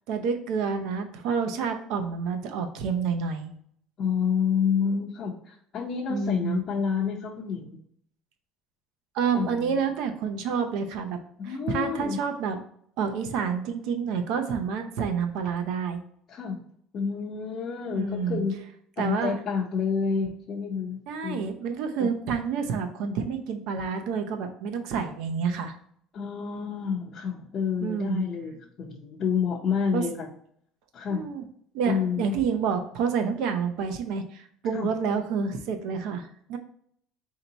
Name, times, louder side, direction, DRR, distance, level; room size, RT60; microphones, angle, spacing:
voice 1, 0.1-3.5 6.1-6.6 9.1-12.6 13.0-16.0 17.9-18.4 19.0-19.4 21.1-25.7 27.8-28.2 29.9-30.0 31.1-31.4 31.7-36.6, right 6 dB, 65° right, 6 dB, 0.6 m, -29 dB
voice 2, 4.0-7.8 9.3-9.8 11.4-12.2 16.3-16.6 16.9-18.5 19.0-21.4 22.0-22.1 26.1-30.3 30.9-31.2 31.9-32.3 34.7-34.9, left 6 dB, 35° left, -5 dB, 0.7 m, -29 dB
4.5 x 2.8 x 3.9 m, 0.65 s
cardioid pair, 165°, 0 cm